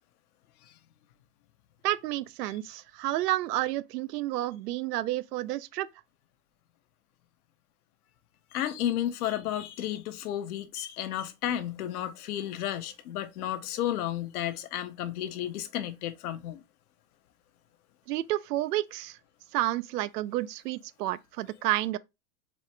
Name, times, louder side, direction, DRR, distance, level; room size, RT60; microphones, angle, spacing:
voice 1, 1.8-5.9 18.1-19.2 19.5-22.0, right 15 dB, 85° right, 0.6 m, -30 dB
voice 2, 8.5-16.6, left 11 dB, 70° left, 0.8 m, -32 dB
4.2 x 3.3 x 3.1 m
supercardioid pair, 135°, 46 cm